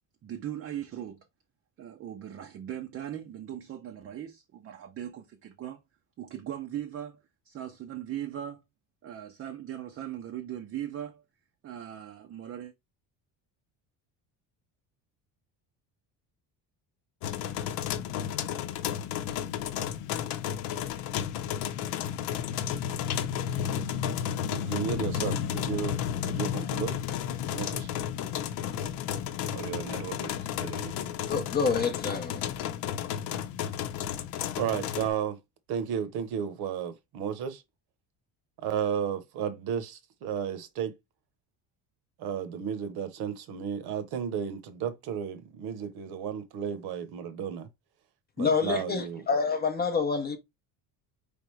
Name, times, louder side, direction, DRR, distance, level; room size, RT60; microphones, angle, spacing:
voice 1, 0.2-1.3 1.8-5.8 6.2-7.2 7.4-8.6 9.0-11.2 11.6-12.7, right 11 dB, 30° right, 0.5 m, -39 dB
sound 1, 17.2-35.1, left 9 dB, 75° left, 0.8 m, -32 dB
voice 2, 24.5-27.0 27.5-27.9 29.5-31.1 34.6-35.4 35.7-37.6 38.6-40.9 42.2-47.7 48.4-49.2, right 8 dB, 60° right, 0.9 m, -33 dB
voice 3, 31.3-32.4 48.4-50.4, left 5 dB, 20° left, 0.6 m, -27 dB
4.9 x 3.5 x 3.1 m
cardioid pair, 160°, 43 cm